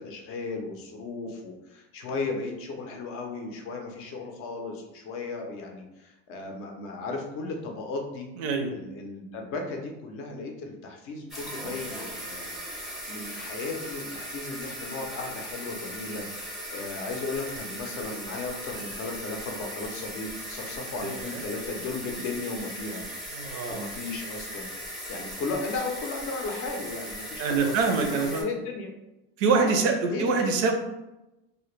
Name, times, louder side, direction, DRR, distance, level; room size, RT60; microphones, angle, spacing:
voice 1, 0.0-8.3 8.7-23.0 23.7-24.7 25.1-28.9 29.6-29.7 30.1-30.5, left 3 dB, 45° left, 3 dB, 0.5 m, -35 dB
voice 2, 8.4-8.7 21.0-21.2 23.3-23.8 27.4-28.4 29.4-30.7, right 4 dB, 55° right, 4 dB, 0.5 m, -25 dB
sound 1, 11.3-28.4, equal, ahead, 0.5 m, -38 dB
2.1 x 2.0 x 3.0 m, 0.95 s
supercardioid pair, 130°, 31 cm